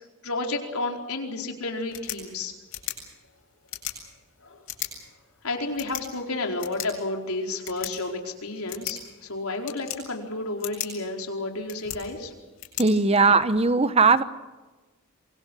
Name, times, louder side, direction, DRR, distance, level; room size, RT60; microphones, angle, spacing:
voice 1, 0.2-2.5 5.4-12.3, left 2 dB, 85° left, 2 dB, 4.7 m, -31 dB
sound 1, 1.7-13.7, left 10 dB, 65° left, 7.9 m, -40 dB
voice 2, 12.8-14.2, right 4 dB, 30° right, 12 dB, 0.9 m, -19 dB
27.5 x 24.0 x 6.3 m, 1.2 s
head